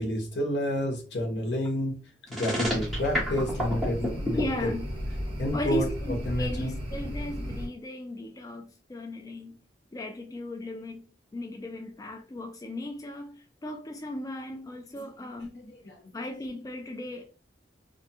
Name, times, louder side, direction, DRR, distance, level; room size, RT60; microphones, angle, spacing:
voice 1, 0.0-2.0 2.3-4.7 5.4-5.9 6.3-6.7 15.0-15.3 15.6-16.1, left 1 dB, 80° left, 0.9 m, -30 dB
sound 1, 2.3-4.4, equal, ahead, 1.0 m, -29 dB
sound 2, 2.6-7.7, equal, 35° right, 1.0 m, -35 dB
voice 2, 4.3-4.9 5.4-9.6 9.9-15.6 16.1-17.2, equal, 20° left, 0.3 m, -36 dB
2.5 x 2.2 x 2.7 m
head